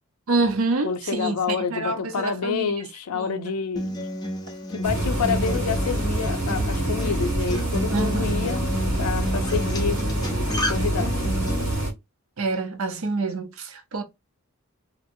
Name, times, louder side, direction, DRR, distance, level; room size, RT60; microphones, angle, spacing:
voice 1, 0.3-2.7 3.1-3.5 7.9-8.5 12.4-14.0, right 3 dB, 65° right, 0.6 m, -27 dB
voice 2, 0.8-4.1 4.7-8.6 9.0-10.0 10.5-11.2, left 6 dB, 80° left, 0.4 m, -28 dB
Acoustic guitar, 3.8-11.7, equal, 20° left, 0.5 m, -31 dB
sound 1, 4.8-11.9, right 1 dB, 85° right, 1.3 m, -26 dB
2.8 x 2.6 x 2.5 m
head